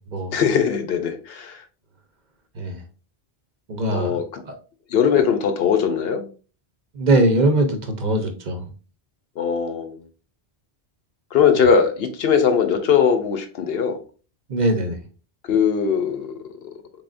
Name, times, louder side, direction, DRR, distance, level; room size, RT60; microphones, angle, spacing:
voice 1, 0.3-1.6 3.9-4.4 4.9-6.3 9.4-10.0 11.3-14.0 15.5-16.3, left 7 dB, 70° left, 0.8 m, -20 dB
voice 2, 3.7-4.2 4.5-4.6 7.0-8.6 14.5-15.0, right 1 dB, 50° right, 0.8 m, -21 dB
3.7 x 3.5 x 2.5 m
omnidirectional pair, 1.1 m